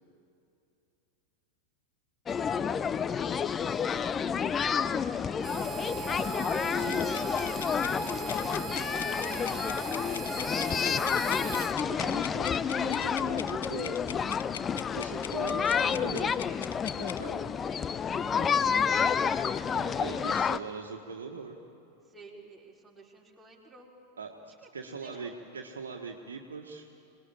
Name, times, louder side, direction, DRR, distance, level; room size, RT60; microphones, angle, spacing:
sound 1, 2.3-20.6, left 7 dB, 20° left, 0.6 m, -29 dB
Harmonica, 5.4-11.7, right 10 dB, 25° right, 0.7 m, -39 dB
voice 1, 6.8-7.1 11.9-14.0 14.9-16.4 16.8-17.6 18.4-18.6 19.7-21.6 24.2-26.9, right 5 dB, 70° right, 1 dB, 1.6 m, -41 dB
sound 2, 6.9-17.2, left 9 dB, 65° left, 0.6 m, -43 dB
voice 2, 17.7-19.2 20.0-20.8 22.0-23.9 24.6-25.2, right 3 dB, 10° right, -3 dB, 4.4 m, -54 dB
26.0 x 19.5 x 8.9 m, 2.7 s
figure-of-eight pair, 90°, 0 cm